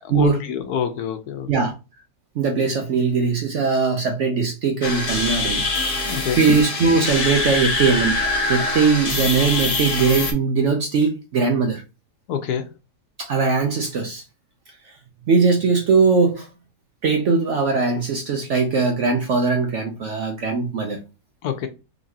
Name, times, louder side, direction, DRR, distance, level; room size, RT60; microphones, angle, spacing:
voice 1, 0.1-1.7 6.0-6.4 12.3-12.7 21.4-21.7, left 9 dB, 75° left, 1.1 m, -26 dB
voice 2, 2.4-5.6 6.4-8.2 8.5-11.8 13.2-14.2 15.3-16.5 17.0-21.0, right 4 dB, 65° right, 0.7 m, -20 dB
sound 1, 4.8-10.3, left 2 dB, 45° left, 0.5 m, -24 dB
4.0 x 2.9 x 2.7 m
omnidirectional pair, 1.7 m